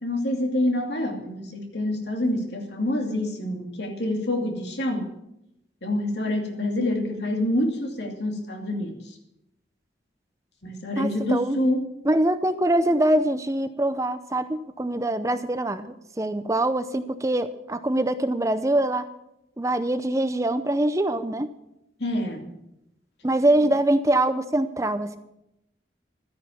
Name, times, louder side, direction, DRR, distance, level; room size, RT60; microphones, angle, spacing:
voice 1, 0.0-5.2 5.8-9.2 10.6-11.9 22.0-22.6, left 1 dB, 70° left, 4 dB, 2.5 m, -27 dB
voice 2, 11.0-11.6 12.1-19.1 19.6-21.5 23.2-25.2, right 1 dB, 15° right, 11 dB, 0.6 m, -24 dB
13.0 x 10.0 x 7.0 m, 0.83 s
head